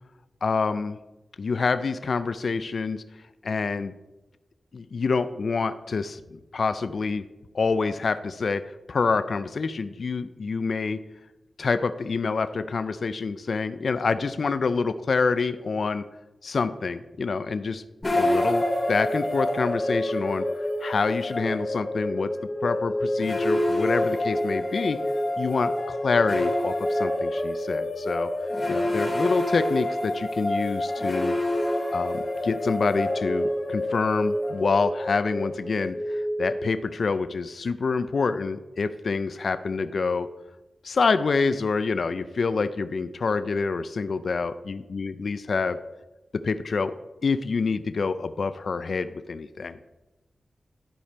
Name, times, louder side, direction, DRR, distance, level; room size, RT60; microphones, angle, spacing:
voice 1, 0.4-1.0 1.4-3.0 3.4-3.9 4.7-7.2 7.5-8.6 8.9-11.0 11.6-16.0 16.4-17.8 18.1-18.6 18.9-20.5 20.8-22.3 22.6-25.0 25.4-28.3 28.7-31.3 31.9-40.3 40.8-45.8 46.3-46.9 47.2-49.8, left 4 dB, 70° left, 12 dB, 0.4 m, -27 dB
sound 1, 18.0-37.1, left 1 dB, 35° left, 2.7 m, -27 dB
11.5 x 5.0 x 4.4 m, 1.1 s
cardioid pair, 45°, 0 cm